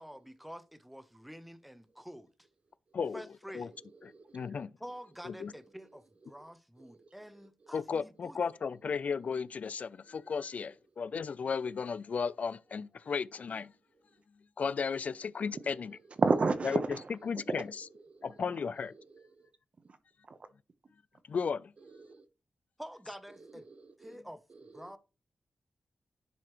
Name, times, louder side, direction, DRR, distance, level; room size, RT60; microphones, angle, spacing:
voice 1, 0.0-2.3 3.1-3.7 4.8-8.4 22.8-23.7 24.0-24.4 24.7-25.0, equal, ahead, 0.6 m, -48 dB
voice 2, 2.9-3.2 3.5-3.7 4.0-4.7 5.2-5.5 7.7-13.7 14.6-15.9 17.3-17.6 18.2-18.9 21.3-21.7, left 5 dB, 55° left, 0.3 m, -35 dB
voice 3, 3.5-4.7 6.2-7.7 9.9-10.3 15.1-19.5 19.8-20.0 20.3-20.4 21.8-22.3 23.3-24.2 24.5-24.9, right 4 dB, 45° right, 0.9 m, -37 dB
10.5 x 4.9 x 3.0 m
wide cardioid pair, 175°, 3 cm